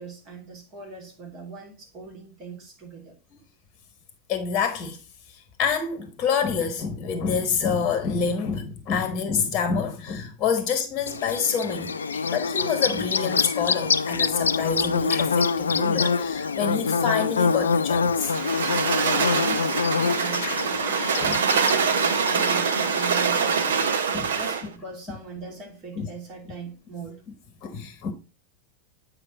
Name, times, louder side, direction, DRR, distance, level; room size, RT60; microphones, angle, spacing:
voice 1, 0.0-3.2 12.1-12.3 19.1-23.9 24.4-27.2, right 4 dB, 35° right, 2.8 m, -40 dB
voice 2, 4.3-5.0 5.3-11.9 12.3-18.3 20.4-20.6 21.1-21.4 24.1-24.3 26.0-26.1 27.6-28.1, left 6 dB, 30° left, 1.2 m, -27 dB
Bird / Buzz, 11.1-24.0, left 5 dB, 70° left, 0.4 m, -26 dB
sound 1, 18.2-24.7, right 6 dB, 65° right, 0.8 m, -24 dB
8.9 x 4.9 x 3.9 m
figure-of-eight pair, 90°, 0 cm